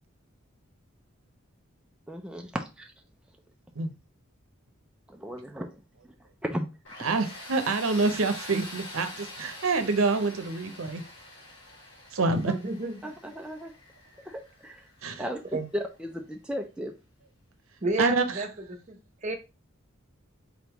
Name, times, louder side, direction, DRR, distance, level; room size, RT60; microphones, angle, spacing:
voice 1, 2.1-2.9 5.1-6.1 6.4-6.7 13.0-13.7 14.2-14.9 15.2-15.4 15.7-16.9, equal, 5° right, 0.4 m, -35 dB
Tools, 6.8-15.6, left 2 dB, 60° left, 1.8 m, -45 dB
voice 2, 7.0-11.0 12.1-12.5 15.0-15.2 18.0-18.3, right 3 dB, 85° right, 0.7 m, -26 dB
voice 3, 12.6-13.0 15.5-15.7 17.8-19.3, right 2 dB, 35° right, 0.8 m, -31 dB
4.0 x 3.5 x 2.9 m
head